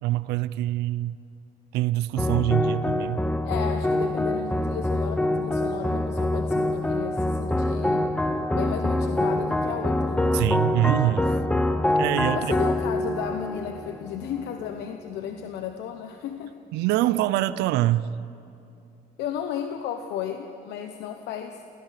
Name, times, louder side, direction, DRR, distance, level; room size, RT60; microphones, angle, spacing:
voice 1, 0.0-1.2 1.7-3.3 10.3-11.2 12.0-12.5 16.7-18.1, right 15 dB, 90° right, 16 dB, 0.6 m, -24 dB
sound 1, 2.2-14.7, left 1 dB, 5° left, 0.8 m, -25 dB
voice 2, 3.4-8.1 8.5-10.4 12.3-16.6 19.2-21.6, left 9 dB, 80° left, 6 dB, 1.1 m, -34 dB
28.0 x 16.5 x 6.7 m, 2.7 s
cardioid pair, 110°, 17 cm